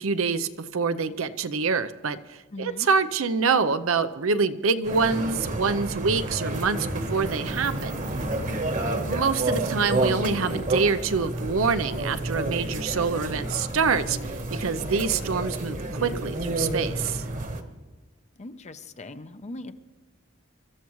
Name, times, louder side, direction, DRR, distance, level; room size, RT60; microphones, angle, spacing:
voice 1, 0.0-8.0 9.1-17.2, right 5 dB, 75° right, 12 dB, 0.7 m, -26 dB
voice 2, 2.5-2.9 8.7-9.0 18.4-19.7, left 2 dB, 35° left, 10 dB, 0.7 m, -40 dB
sound 1, 4.8-17.6, right 2 dB, 40° right, 1.3 m, -30 dB
24.5 x 14.0 x 3.1 m, 1.2 s
head